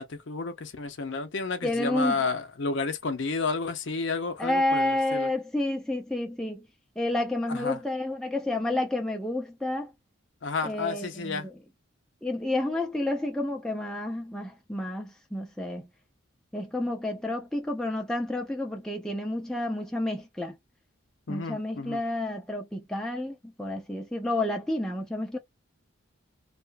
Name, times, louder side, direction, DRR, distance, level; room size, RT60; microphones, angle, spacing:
voice 1, 0.0-5.3 7.5-7.8 10.4-11.5 21.3-22.0, left 4 dB, 55° left, 0.6 m, -31 dB
voice 2, 1.6-2.2 4.4-6.6 7.0-9.9 10.6-11.5 12.2-15.9 16.5-20.6 21.3-25.4, left 1 dB, 5° left, 0.5 m, -30 dB
2.7 x 2.4 x 2.2 m
head